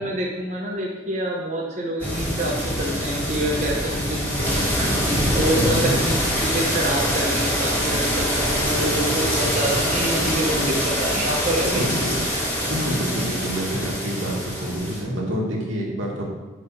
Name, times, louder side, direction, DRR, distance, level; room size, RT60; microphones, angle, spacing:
voice 1, 0.0-11.8, right 1 dB, 35° right, -2 dB, 1.0 m, -27 dB
sound 1, 2.0-15.0, equal, 10° left, 2.3 m, -24 dB
voice 2, 5.6-6.0 11.6-12.2 12.7-16.2, equal, 85° right, -3 dB, 2.1 m, -27 dB
6.0 x 5.5 x 5.8 m, 1.2 s
head